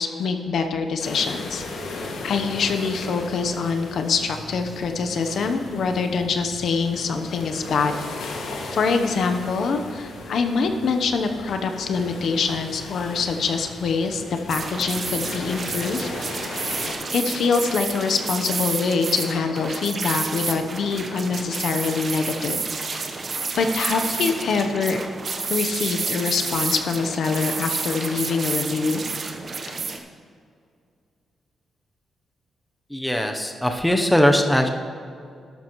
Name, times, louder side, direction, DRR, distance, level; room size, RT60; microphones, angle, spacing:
voice 1, 0.0-1.6 1.9-7.9 8.6-16.1 17.1-22.6 23.5-25.0 25.5-29.0, left 4 dB, 65° left, 6 dB, 0.8 m, -24 dB
sound 1, 1.0-16.9, left 2 dB, 85° left, 2.0 m, -36 dB
sound 2, 14.5-30.0, right 4 dB, 40° right, 1.0 m, -30 dB
voice 2, 32.9-34.7, equal, 5° left, 4 dB, 0.8 m, -20 dB
12.5 x 12.0 x 3.1 m, 2.3 s
cardioid pair, 135°, 0 cm